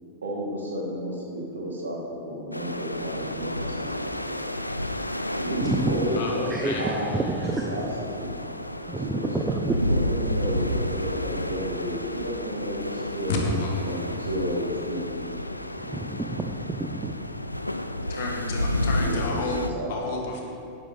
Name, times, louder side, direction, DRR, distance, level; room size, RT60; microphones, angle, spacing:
voice 1, 0.2-4.5 5.3-7.2 7.6-8.4 9.0-15.2 15.9-16.0 19.0-19.9, equal, 70° right, -2 dB, 2.2 m, -32 dB
sound 1, 2.5-19.7, left 1 dB, 85° left, 0.4 m, -31 dB
voice 2, 5.6-6.1 6.5-7.7 8.9-9.8 15.8-17.1, right 2 dB, 10° right, 2 dB, 0.7 m, -29 dB
voice 3, 6.2-6.9 13.3-13.9 18.1-19.6 19.9-20.4, left 3 dB, 55° left, 0 dB, 1.9 m, -30 dB
10.0 x 9.9 x 4.1 m, 2.6 s
figure-of-eight pair, 90°, 0 cm